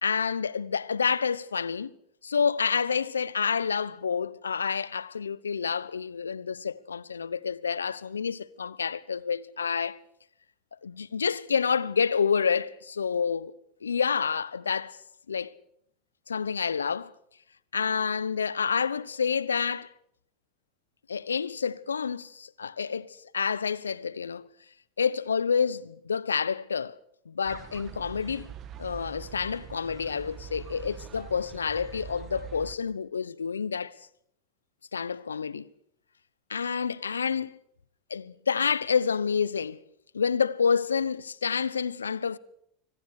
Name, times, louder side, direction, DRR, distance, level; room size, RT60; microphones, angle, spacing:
voice 1, 0.0-1.9 2.2-10.0 10.8-13.5 13.8-15.0 15.3-15.5 16.3-17.1 17.7-19.9 21.1-24.4 25.0-26.9 27.3-28.5 28.8-33.9 34.9-35.7 36.5-37.5 38.1-39.8 40.1-42.4, left 6 dB, 85° left, 1.0 m, -28 dB
sound 1, 27.5-32.8, right 9 dB, 40° right, 2.3 m, -44 dB
26.0 x 25.0 x 6.6 m
hypercardioid pair, 85°, 0 cm